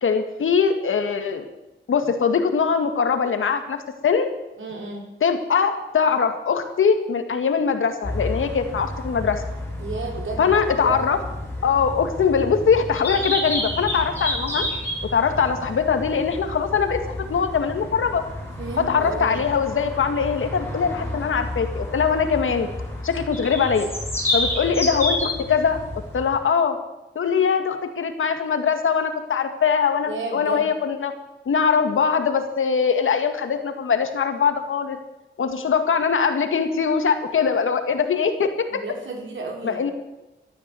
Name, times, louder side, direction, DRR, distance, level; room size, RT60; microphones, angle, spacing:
voice 1, 0.0-1.4 1.9-3.8 4.0-4.3 5.2-9.4 10.4-11.2 11.6-14.7 15.1-17.0 17.3-18.2 18.8-22.7 23.0-23.9 24.3-25.8 26.1-26.8 27.2-31.1 31.5-35.0 35.4-38.8 39.6-39.9, left 6 dB, 85° left, 7 dB, 2.0 m, -22 dB
voice 2, 4.6-5.0 9.8-10.5 10.7-11.0 18.6-19.4 30.1-30.7 38.8-39.9, right 3 dB, 75° right, 1 dB, 4.8 m, -32 dB
sound 1, 8.0-26.4, left 1 dB, 10° left, 7.4 m, -30 dB
13.5 x 13.0 x 7.8 m, 0.99 s
wide cardioid pair, 90°, 20 cm